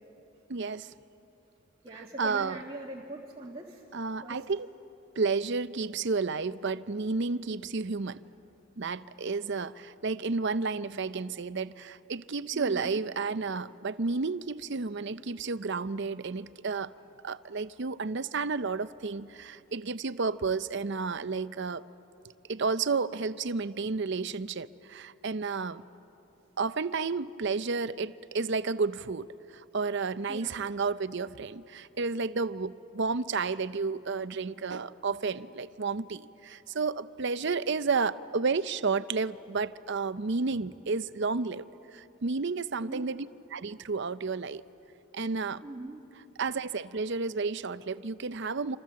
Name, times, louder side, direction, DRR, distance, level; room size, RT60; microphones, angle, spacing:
voice 1, 0.5-0.9 2.0-2.6 3.9-4.7 5.2-8.2 8.8-16.9 17.2-21.8 22.5-25.8 26.6-29.3 29.5-41.6 41.9-44.6 45.1-45.6 46.4-48.8, right 4 dB, 50° right, 14 dB, 0.6 m, -31 dB
voice 2, 1.8-3.8 4.2-4.4 12.5-13.0 30.3-30.5 42.8-43.1 45.6-46.0, right 1 dB, 25° right, -3 dB, 1.9 m, -42 dB
27.5 x 27.0 x 7.6 m, 2.9 s
head